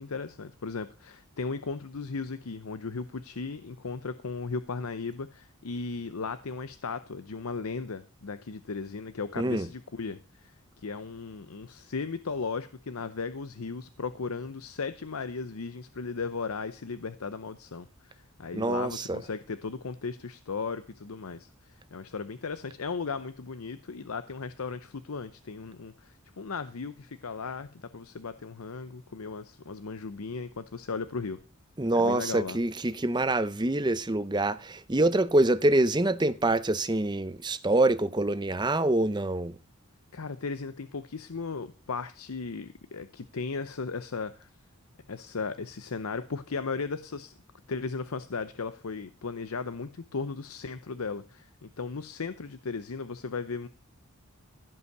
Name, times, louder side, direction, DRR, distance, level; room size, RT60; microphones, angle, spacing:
voice 1, 0.0-31.4 31.9-32.6 40.1-44.5 45.1-47.3 47.7-53.7, left 4 dB, 80° left, 0.7 m, -36 dB
voice 2, 9.4-9.7 18.5-19.3 31.8-39.6, right 2 dB, 20° right, 0.6 m, -25 dB
15.5 x 5.6 x 6.7 m
head